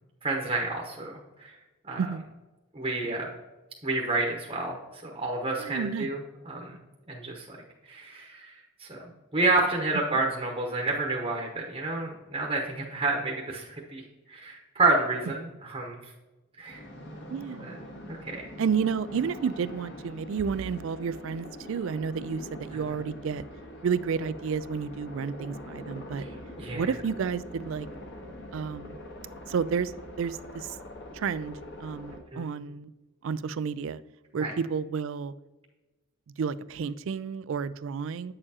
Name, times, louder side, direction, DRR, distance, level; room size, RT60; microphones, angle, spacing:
voice 1, 0.2-1.5 1.9-2.0 2.7-3.3 3.8-4.8 5.1-6.2 6.4-6.8 7.1-7.6 7.9-8.5 8.8-14.0 14.3-16.0 16.6-16.8 17.6-17.8 18.2-18.5 26.2-26.3 26.6-26.9 32.3-32.5 34.4-34.5, right 2 dB, 25° right, 0 dB, 0.9 m, -29 dB
voice 2, 5.6-6.1 10.1-10.2 17.3-17.8 18.6-23.4 23.8-26.2 26.7-27.9 28.5-29.0 29.5-29.9 30.2-30.7 31.1-32.9 33.2-34.0 34.3-35.3 36.4-38.3, right 6 dB, 60° right, 17 dB, 0.3 m, -31 dB
sound 1, 16.7-32.2, left 1 dB, 55° left, 1.3 m, -43 dB
8.7 x 6.6 x 2.8 m, 1.1 s
head